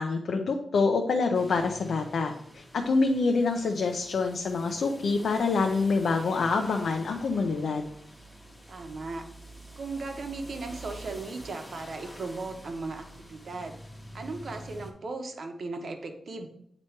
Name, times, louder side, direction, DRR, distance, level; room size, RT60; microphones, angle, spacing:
voice 1, 0.0-7.8, left 4 dB, 65° left, 3 dB, 0.6 m, -26 dB
sound 1, 1.3-14.9, equal, 5° left, 1.1 m, -47 dB
voice 2, 8.7-9.2 9.8-13.8 14.1-16.5, right 3 dB, 55° right, 5 dB, 0.9 m, -37 dB
8.6 x 3.0 x 4.5 m, 0.71 s
wide cardioid pair, 120°, 0 cm